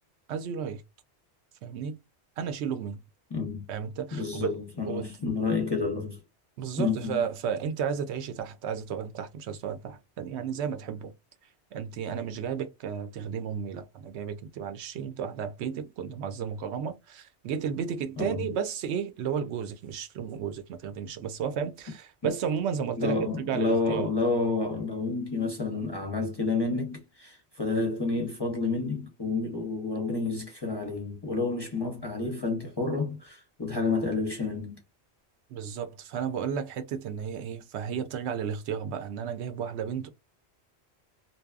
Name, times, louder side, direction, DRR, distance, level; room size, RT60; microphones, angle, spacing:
voice 1, 0.3-0.8 1.6-2.0 2.4-3.0 3.7-5.1 6.6-11.1 11.7-24.1 35.5-40.1, right 7 dB, 80° right, 0.9 m, -33 dB
voice 2, 3.3-3.7 4.1-6.2 6.8-7.2 18.2-18.5 22.2-22.3 23.0-34.8, left 3 dB, 30° left, 0.5 m, -30 dB
2.7 x 2.2 x 2.3 m
omnidirectional pair, 1.1 m